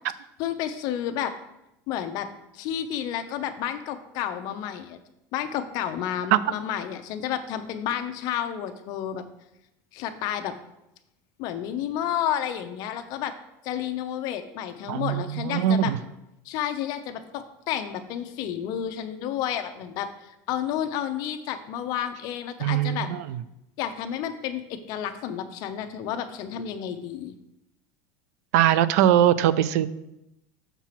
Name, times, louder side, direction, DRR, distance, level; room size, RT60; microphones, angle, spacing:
voice 1, 0.4-1.3 1.9-2.3 2.5-5.0 5.3-9.2 9.9-10.5 11.4-13.3 13.6-15.9 16.5-23.1 23.8-27.3, left 10 dB, 50° left, 8 dB, 0.7 m, -31 dB
voice 2, 14.9-16.0 22.6-23.4 28.5-29.9, right 11 dB, 80° right, 16 dB, 0.4 m, -21 dB
6.8 x 4.5 x 5.8 m, 0.88 s
cardioid pair, 155°, 8 cm